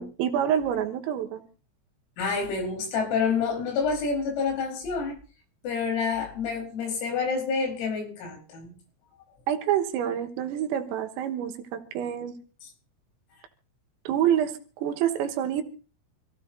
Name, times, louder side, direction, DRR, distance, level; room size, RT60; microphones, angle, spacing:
voice 1, 0.0-1.4 9.5-12.4 14.1-15.6, right 10 dB, 85° right, 7 dB, 4.0 m, -27 dB
voice 2, 2.2-5.2 5.6-8.7 12.6-12.7, left 5 dB, 80° left, 2 dB, 7.2 m, -28 dB
26.5 x 16.0 x 2.7 m, 0.37 s
omnidirectional pair, 6.0 m